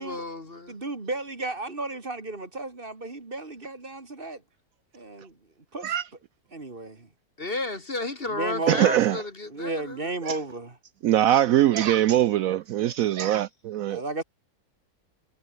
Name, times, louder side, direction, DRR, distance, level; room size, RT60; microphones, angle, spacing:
voice 1, 0.0-0.8 7.4-10.1, left 2 dB, 40° left, 2.6 m, -33 dB
voice 2, 0.7-4.4 4.9-5.4 5.7-6.0 6.5-7.1 8.3-9.1 9.4-10.8 13.9-14.2, right 2 dB, 35° right, 2.6 m, -34 dB
voice 3, 8.7-9.2 11.0-14.0, right 12 dB, 70° right, 1.0 m, -22 dB
omnidirectional pair, 1.6 m